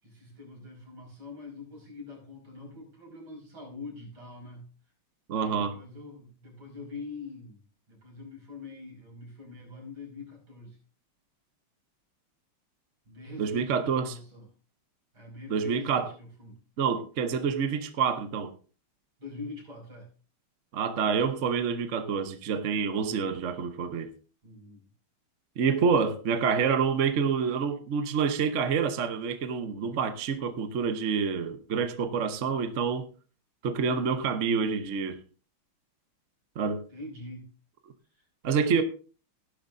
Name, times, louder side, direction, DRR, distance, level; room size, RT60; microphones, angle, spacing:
voice 1, 0.0-4.6 5.3-7.6 7.9-10.8 13.0-14.5 15.1-16.6 19.2-20.1 24.4-24.9 36.9-37.5 38.1-38.8, left 3 dB, 70° right, 6.5 m, -44 dB
voice 2, 5.3-5.7 13.4-14.2 15.5-16.1 16.8-18.5 20.7-24.1 25.6-33.1 33.6-35.2 36.6-36.8 38.4-38.8, right 6 dB, 50° right, 0.9 m, -27 dB
15.5 x 11.5 x 2.6 m
omnidirectional pair, 2.3 m